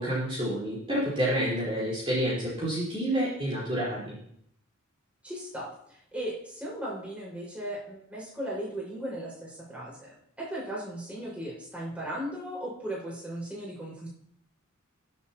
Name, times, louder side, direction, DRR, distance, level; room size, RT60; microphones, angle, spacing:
voice 1, 0.0-4.2, right 1 dB, 25° right, -9 dB, 4.5 m, -29 dB
voice 2, 5.2-14.1, right 1 dB, 5° right, -6 dB, 5.5 m, -37 dB
22.0 x 7.9 x 3.0 m, 0.67 s
head